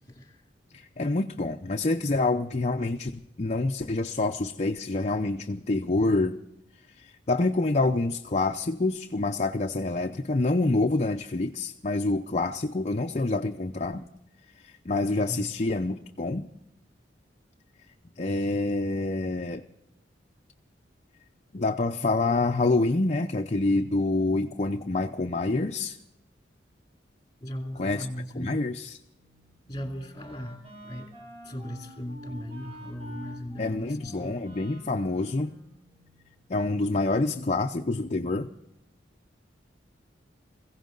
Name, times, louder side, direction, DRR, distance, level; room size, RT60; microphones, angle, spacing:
voice 1, 0.1-0.4 15.2-15.5 27.4-28.6 29.7-31.1 31.4-34.4, equal, 20° left, 2.5 m, -37 dB
voice 2, 0.7-6.4 7.0-14.1 14.6-16.5 18.2-19.6 21.5-26.0 27.8-28.1 28.3-29.0 33.6-35.5 36.5-38.5, left 2 dB, 40° left, 0.6 m, -27 dB
Wind instrument woodwind instrument, 29.2-36.3, equal, 35° right, 6.9 m, -48 dB
22.0 x 16.0 x 3.9 m
head